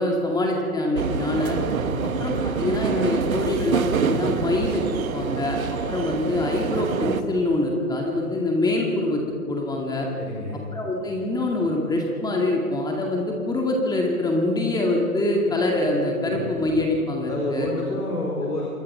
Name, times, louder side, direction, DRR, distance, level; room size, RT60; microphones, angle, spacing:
voice 1, 0.0-1.6 2.2-9.2 9.5-10.1 10.7-17.7, left 2 dB, 10° left, 0 dB, 2.1 m, -24 dB
sound 1, 0.9-7.2, right 6 dB, 65° right, 1.5 m, -26 dB
voice 2, 1.8-2.2 10.2-10.6 15.5-15.6 16.2-16.5 17.2-18.7, left 2 dB, 85° left, -1 dB, 4.9 m, -29 dB
27.0 x 21.5 x 5.6 m, 2.6 s
figure-of-eight pair, 125°, 45 cm